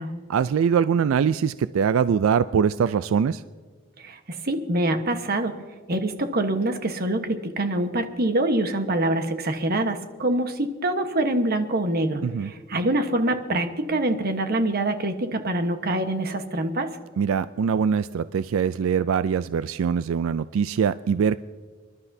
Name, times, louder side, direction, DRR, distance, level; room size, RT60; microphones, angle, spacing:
voice 1, 0.3-3.4 12.2-12.5 17.2-21.4, right 7 dB, 85° right, 14 dB, 0.3 m, -23 dB
voice 2, 4.0-5.6 5.9-16.9, right 1 dB, 50° right, 7 dB, 1.2 m, -25 dB
26.5 x 12.0 x 2.7 m, 1.5 s
head